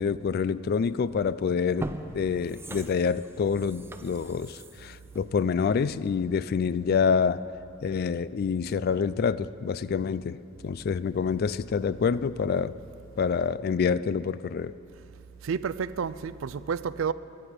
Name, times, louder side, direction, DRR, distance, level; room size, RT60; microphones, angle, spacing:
voice 1, 0.0-7.5 7.8-10.4 10.6-12.7 13.2-14.7, left 6 dB, 50° left, 0.3 m, -27 dB
sound 1, 1.0-1.2 1.6-6.3 6.7-6.8, right 1 dB, 10° right, 0.5 m, -41 dB
voice 2, 15.4-17.1, right 6 dB, 80° right, 0.4 m, -30 dB
22.0 x 9.7 x 5.0 m
head